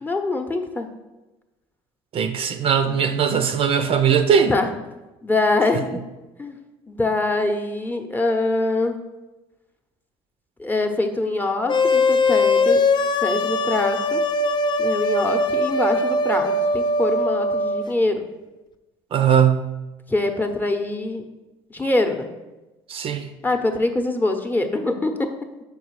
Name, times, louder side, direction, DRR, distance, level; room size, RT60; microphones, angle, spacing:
voice 1, 0.0-0.9 4.5-4.7 5.2-6.0 6.4-6.6 6.9-9.0 10.6-12.8 13.2-14.2 14.8-18.2 20.1-21.2 21.7-22.3 23.4-25.5, left 2 dB, 15° left, 5 dB, 0.8 m, -24 dB
voice 2, 2.1-4.5 19.1-19.7 22.9-23.3, right 7 dB, 50° right, 8 dB, 0.6 m, -19 dB
sound 1, 11.7-17.8, left 2 dB, 40° left, 0.5 m, -21 dB
5.0 x 4.7 x 4.7 m, 1.1 s
supercardioid pair, 75°, 12 cm